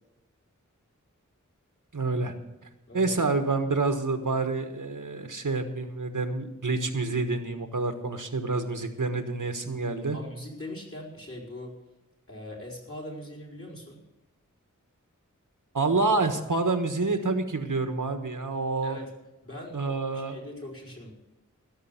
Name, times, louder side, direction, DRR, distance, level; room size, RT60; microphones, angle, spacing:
voice 1, 1.9-2.3 2.9-10.2 15.7-19.0 19.7-20.4, right 3 dB, 80° right, 7 dB, 1.4 m, -28 dB
voice 2, 10.1-11.8 12.3-14.0 18.8-19.1 19.4-21.1, left 1 dB, 45° left, -1 dB, 4.3 m, -41 dB
16.0 x 6.8 x 8.2 m, 0.99 s
wide cardioid pair, 50°, 31 cm